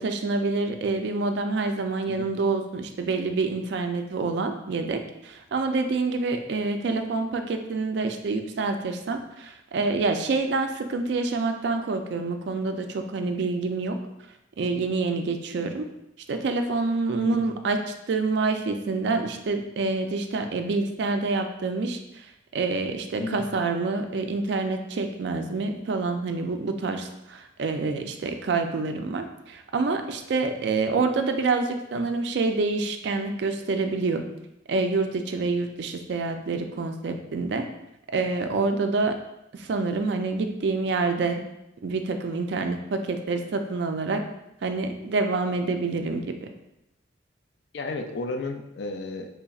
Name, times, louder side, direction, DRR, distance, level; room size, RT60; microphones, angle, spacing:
voice 1, 0.0-14.0 14.6-15.9 16.3-22.3 22.5-34.2 34.7-37.7 38.1-39.2 39.5-41.4 41.8-44.2 44.6-46.5, right 3 dB, 60° right, 6 dB, 0.4 m, -27 dB
voice 2, 47.7-49.3, left 2 dB, 60° left, 5 dB, 0.4 m, -32 dB
3.9 x 3.3 x 2.3 m, 0.88 s
head